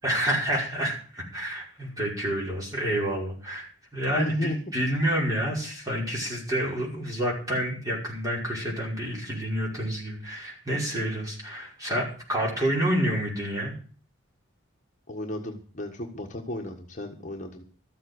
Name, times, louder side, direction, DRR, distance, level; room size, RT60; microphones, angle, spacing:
voice 1, 0.0-13.7, right 1 dB, 15° right, -3 dB, 5.4 m, -28 dB
voice 2, 4.2-4.6 15.1-17.6, left 1 dB, 40° left, 2 dB, 1.5 m, -34 dB
13.5 x 7.9 x 8.0 m, 0.42 s
head